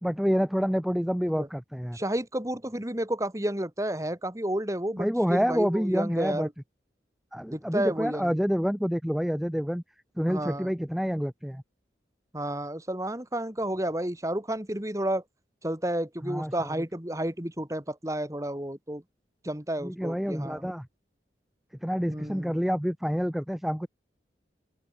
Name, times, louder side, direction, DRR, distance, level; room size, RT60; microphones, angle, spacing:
voice 1, 0.0-2.0 5.0-6.5 7.3-9.8 10.2-11.6 16.2-16.8 19.8-20.9 21.8-23.9, equal, ahead, 0.5 m, -28 dB
voice 2, 1.9-6.5 7.5-8.3 10.3-10.7 12.3-15.2 15.6-19.0 19.4-20.6 22.1-22.6, right 1 dB, 20° right, 2.3 m, -31 dB
head